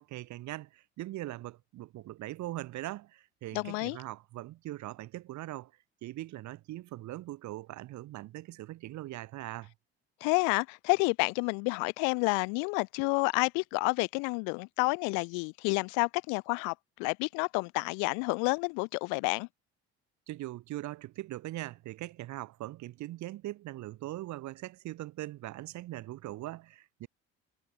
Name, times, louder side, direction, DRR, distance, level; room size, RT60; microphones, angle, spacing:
voice 1, 0.0-5.7 6.0-9.7 20.3-27.1, right 16 dB, 70° right, 4.6 m, -41 dB
voice 2, 3.5-4.0 10.2-16.7 17.0-19.5, left 39 dB, 85° left, 1.4 m, -29 dB
supercardioid pair, 75°, 30 cm